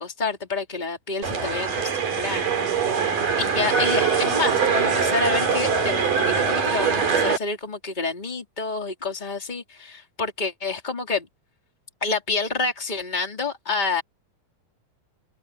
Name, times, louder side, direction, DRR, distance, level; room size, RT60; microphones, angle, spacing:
voice 1, 0.0-11.3 12.0-14.0, left 4 dB, 10° left, 4.3 m, -28 dB
sound 1, 1.2-7.4, right 6 dB, 55° right, 5.3 m, -23 dB
omnidirectional pair, 4.5 m